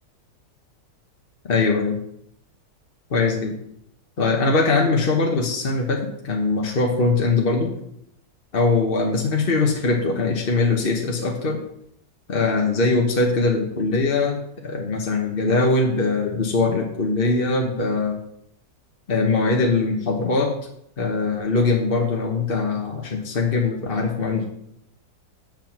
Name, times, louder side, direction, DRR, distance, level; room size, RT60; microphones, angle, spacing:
voice 1, 1.4-2.0 3.1-3.6 4.2-7.7 8.5-11.6 12.3-14.4 14.6-18.2 19.1-20.6 21.0-24.4, left 3 dB, 35° left, 0 dB, 1.3 m, -21 dB
7.8 x 7.2 x 6.0 m, 0.74 s
omnidirectional pair, 1.8 m